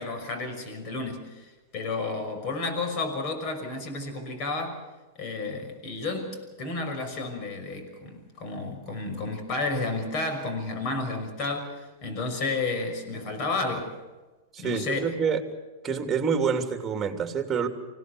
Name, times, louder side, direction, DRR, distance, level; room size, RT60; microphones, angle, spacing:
voice 1, 0.0-4.8 5.2-13.9 14.6-15.1, left 3 dB, 45° left, 7 dB, 5.9 m, -31 dB
voice 2, 14.5-15.4 15.8-17.7, right 6 dB, 15° right, 5 dB, 3.1 m, -27 dB
26.0 x 17.5 x 6.9 m, 1.2 s
hypercardioid pair, 110°, 0 cm